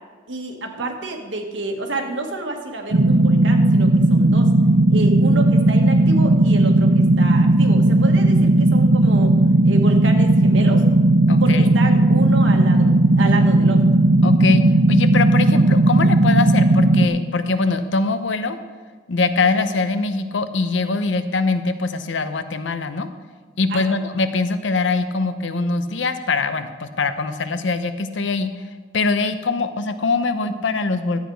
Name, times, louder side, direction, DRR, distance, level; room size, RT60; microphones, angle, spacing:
voice 1, 0.3-4.5 4.9-9.4 9.6-10.9 11.4-13.9 23.7-24.0, right 2 dB, 85° right, 4 dB, 1.4 m, -29 dB
sound 1, 2.9-17.1, right 2 dB, 60° right, 0.6 m, -15 dB
voice 2, 11.3-11.7 14.2-18.6 19.1-23.1 23.6-28.5 28.9-31.2, left 3 dB, 80° left, 10 dB, 0.7 m, -22 dB
12.5 x 8.3 x 4.6 m, 1.5 s
head